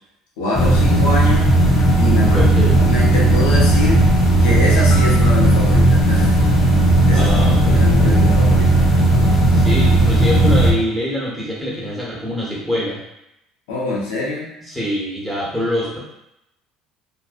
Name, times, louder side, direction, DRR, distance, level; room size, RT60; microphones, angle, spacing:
voice 1, 0.4-1.5 2.0-4.0 4.4-6.4 7.1-7.3 7.6-8.9 13.7-14.5, left 2 dB, 85° left, -5 dB, 0.8 m, -24 dB
sound 1, 0.6-10.7, right 1 dB, 15° left, 0.8 m, -14 dB
voice 2, 2.3-2.8 7.1-7.9 9.5-13.0 14.7-16.0, equal, 5° right, -6 dB, 1.1 m, -24 dB
Marimba xylophone, 4.9-8.8, left 1 dB, 50° left, 0.5 m, -28 dB
2.6 x 2.2 x 2.5 m, 0.84 s
supercardioid pair, 90°, 0 cm